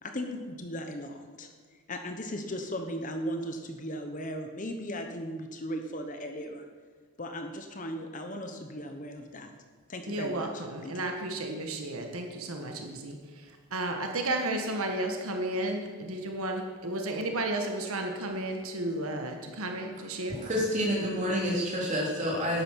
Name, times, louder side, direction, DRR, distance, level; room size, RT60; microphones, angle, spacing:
voice 1, 0.0-1.5 1.9-6.7 7.2-9.5 9.9-10.9 11.3-11.4, equal, 35° left, 5 dB, 1.0 m, -37 dB
voice 2, 10.1-20.4, right 1 dB, 75° right, 3 dB, 1.5 m, -33 dB
voice 3, 20.3-22.6, equal, 35° right, -3 dB, 3.3 m, -28 dB
11.5 x 9.3 x 6.3 m, 1.5 s
head